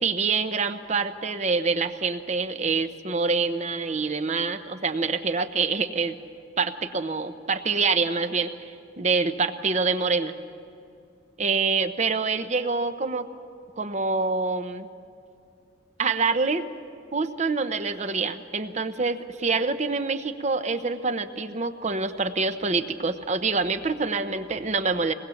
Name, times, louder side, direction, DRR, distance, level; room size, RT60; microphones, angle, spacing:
voice 1, 0.0-6.2 6.6-8.5 9.0-10.3 11.4-13.3 13.8-14.9 16.0-16.7 17.1-25.1, right 4 dB, 40° right, 10 dB, 0.9 m, -26 dB
22.5 x 19.5 x 7.1 m, 2.6 s
head